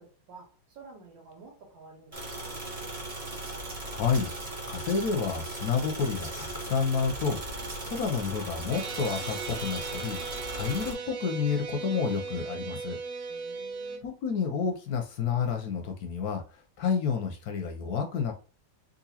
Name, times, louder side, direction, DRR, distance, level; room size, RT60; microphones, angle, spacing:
voice 1, 0.0-2.6 13.3-14.1, right 3 dB, 90° right, 1.9 m, -51 dB
sound 1, 2.1-10.9, right 2 dB, 30° right, 0.6 m, -38 dB
voice 2, 3.9-10.2 10.5-13.0 14.0-18.3, left 6 dB, 70° left, 1.0 m, -30 dB
sound 2, 8.7-14.0, right 4 dB, 65° right, 0.8 m, -37 dB
3.9 x 2.6 x 2.7 m
omnidirectional pair, 2.0 m